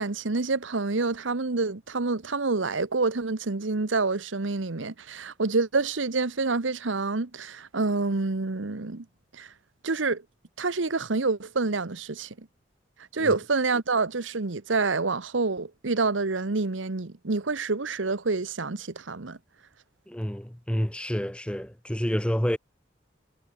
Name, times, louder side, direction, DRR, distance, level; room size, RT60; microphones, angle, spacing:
voice 1, 0.0-9.0 9.4-9.5 9.8-10.2 10.6-12.3 13.1-19.4, right 3 dB, 85° right, 1.1 m, -27 dB
voice 2, 20.1-22.6, equal, 5° left, 0.8 m, -29 dB
head